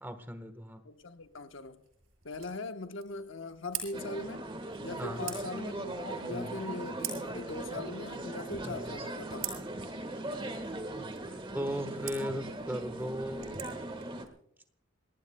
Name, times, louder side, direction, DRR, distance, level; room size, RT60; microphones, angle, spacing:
voice 1, 0.0-0.8 5.0-5.3 6.3-6.5 8.6-8.9 11.5-13.7, equal, 10° right, 1.2 m, -37 dB
voice 2, 0.8-1.8 2.2-4.5 4.8-9.5, left 2 dB, 70° left, 1.0 m, -40 dB
sound 1, 0.9-14.3, right 9 dB, 80° right, 7.8 m, -47 dB
sound 2, 3.9-14.3, right 1 dB, 25° right, 1.4 m, -39 dB
27.5 x 18.5 x 2.2 m
head